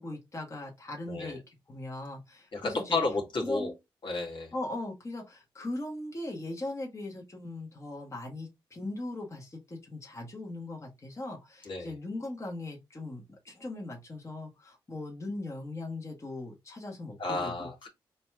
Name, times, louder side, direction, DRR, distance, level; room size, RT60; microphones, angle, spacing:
voice 1, 0.0-3.0 3.4-3.7 4.5-17.7, left 2 dB, 30° left, 1.7 m, -39 dB
voice 2, 2.5-3.7 4.0-4.5 11.7-11.9 17.2-17.9, left 3 dB, 60° left, 2.0 m, -32 dB
4.2 x 3.0 x 3.5 m
cardioid pair, 70°, 9 cm